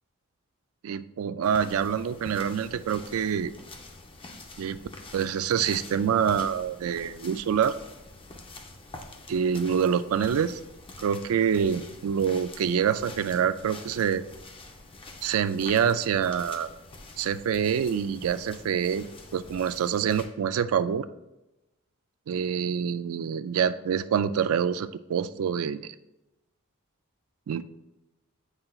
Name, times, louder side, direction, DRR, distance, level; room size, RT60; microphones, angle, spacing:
voice 1, 0.8-3.5 4.6-4.8 5.1-7.7 9.3-10.6 11.0-14.2 15.2-16.7 17.2-19.1 19.3-21.1 22.3-25.9 27.5-27.6, right 7 dB, 75° right, 13 dB, 0.3 m, -26 dB
sound 1, 1.4-20.3, left 2 dB, 25° left, 0.6 m, -46 dB
7.7 x 5.7 x 2.3 m, 0.97 s
head